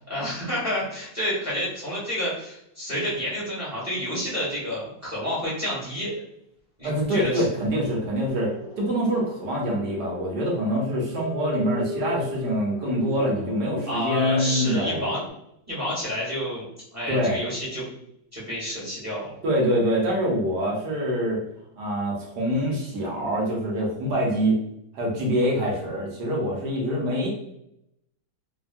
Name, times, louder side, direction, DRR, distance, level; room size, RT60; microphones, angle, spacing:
voice 1, 0.1-6.2 6.8-7.4 13.9-15.2 15.7-16.6 16.9-17.9 18.3-19.3, equal, 10° right, -8 dB, 0.9 m, -29 dB
voice 2, 6.8-15.1 17.1-17.4 19.4-21.4 21.8-24.6 24.9-27.3, equal, 70° right, -2 dB, 1.3 m, -25 dB
sound 1, 7.8-15.3, left 3 dB, 80° left, 1.3 m, -38 dB
3.4 x 2.2 x 2.5 m, 0.77 s
omnidirectional pair, 2.0 m